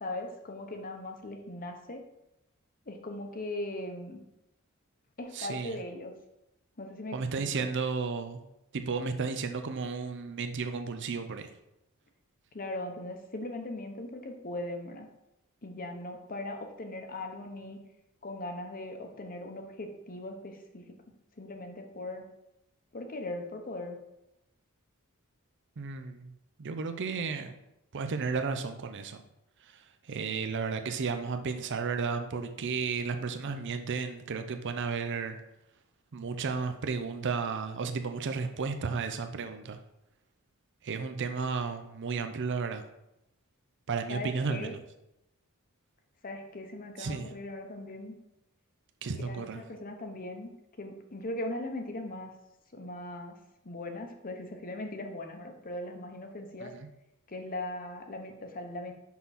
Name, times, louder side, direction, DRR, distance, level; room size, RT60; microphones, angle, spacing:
voice 1, 0.0-2.0 2.9-4.2 5.2-6.1 6.8-7.7 12.5-15.1 15.6-17.8 18.2-20.9 21.4-22.3 22.9-24.0 44.1-44.7 46.2-48.1 49.1-50.5 50.8-52.3 52.7-53.4 53.6-56.7 57.3-58.9, left 1 dB, 40° left, 5 dB, 0.9 m, -39 dB
voice 2, 5.3-5.8 7.1-8.4 8.7-11.5 25.8-26.3 26.6-27.5 27.9-29.2 29.6-35.4 36.1-39.8 40.8-42.8 43.9-44.8 47.0-47.3 49.0-49.6 56.6-56.9, right 5 dB, 55° right, 7 dB, 0.5 m, -33 dB
5.9 x 5.7 x 4.1 m, 0.89 s
head